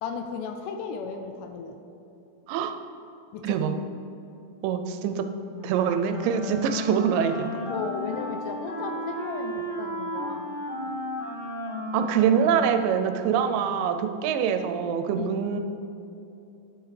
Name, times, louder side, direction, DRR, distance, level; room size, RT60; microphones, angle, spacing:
voice 1, 0.0-1.8 3.3-3.6 7.7-10.6 15.2-15.4, left 5 dB, 80° left, 5 dB, 2.0 m, -35 dB
voice 2, 4.6-5.3 5.6-7.6 11.9-15.6, right 7 dB, 85° right, 7 dB, 2.1 m, -24 dB
Wind instrument woodwind instrument, 5.5-13.7, left 1 dB, 50° left, 2.8 m, -34 dB
9.8 x 8.1 x 3.3 m, 2.8 s
omnidirectional pair, 4.0 m